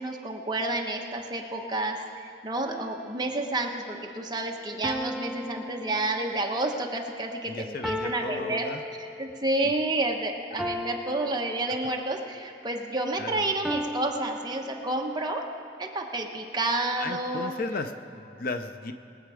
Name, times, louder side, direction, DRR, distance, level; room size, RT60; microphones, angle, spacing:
voice 1, 0.0-8.6 9.2-15.5 15.8-17.5, right 2 dB, 25° right, 1 dB, 1.1 m, -30 dB
sound 1, 2.6-3.5 4.8-6.7 7.8-9.5 10.6-12.2 13.6-15.3, equal, 5° right, 0.3 m, -37 dB
voice 2, 7.5-8.8 9.6-9.7 13.2-13.5 17.0-18.9, left 3 dB, 50° left, 8 dB, 0.6 m, -35 dB
21.5 x 8.1 x 5.0 m, 2.6 s
head